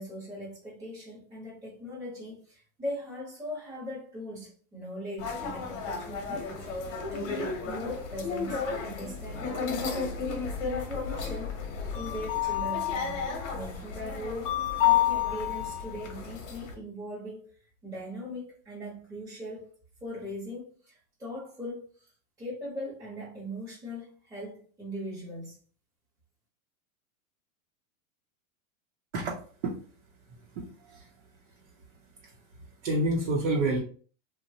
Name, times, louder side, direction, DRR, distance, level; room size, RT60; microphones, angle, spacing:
voice 1, 0.0-11.6 11.9-17.5 17.8-19.7 20.0-22.1 22.4-25.6, left 1 dB, 10° right, 0.8 m, -40 dB
sound 1, 5.2-16.7, left 8 dB, 65° left, 0.9 m, -31 dB
voice 2, 30.6-31.1 32.2-32.3 32.8-33.8, right 2 dB, 55° right, 0.8 m, -28 dB
3.0 x 2.2 x 2.7 m
supercardioid pair, 175°, 40 cm